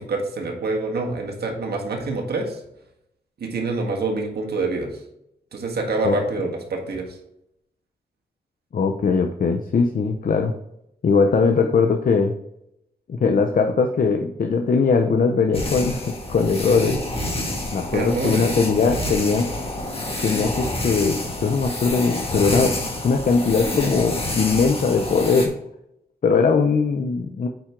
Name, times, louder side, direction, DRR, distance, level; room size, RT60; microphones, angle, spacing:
voice 1, 0.0-2.6 3.4-5.0 5.5-7.2 17.9-18.5, right 3 dB, 80° right, 1 dB, 1.7 m, -26 dB
voice 2, 8.7-10.5 11.0-12.3 13.1-17.0 17.7-19.5 20.2-22.7 23.0-25.5 26.2-27.5, left 4 dB, 55° left, 5 dB, 0.7 m, -20 dB
sound 1, 15.5-25.5, left 1 dB, 35° left, 2.0 m, -28 dB
9.0 x 4.4 x 3.7 m, 0.80 s
wide cardioid pair, 90°, 17 cm